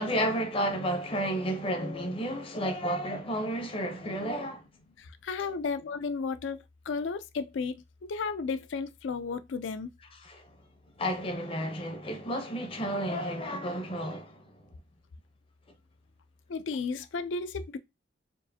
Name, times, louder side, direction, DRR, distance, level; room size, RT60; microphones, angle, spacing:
voice 1, 0.0-4.7 10.2-10.5 11.0-14.6, equal, 30° left, 0.6 m, -32 dB
voice 2, 5.0-9.9 16.5-17.8, left 4 dB, 70° left, 0.4 m, -34 dB
4.5 x 2.5 x 2.6 m
head